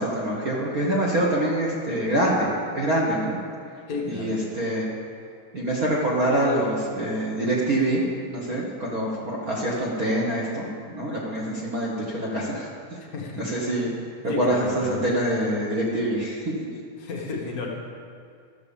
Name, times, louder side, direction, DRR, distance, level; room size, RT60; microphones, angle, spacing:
voice 1, 0.0-3.4 4.0-4.9 5.5-12.7 13.4-13.9 14.2-16.5, right 1 dB, 55° right, -5 dB, 1.0 m, -25 dB
voice 2, 3.9-4.4 13.1-13.4 13.9-15.0 17.0-17.7, left 4 dB, 65° left, -1 dB, 0.9 m, -32 dB
12.5 x 6.9 x 7.0 m, 2.3 s
omnidirectional pair, 3.6 m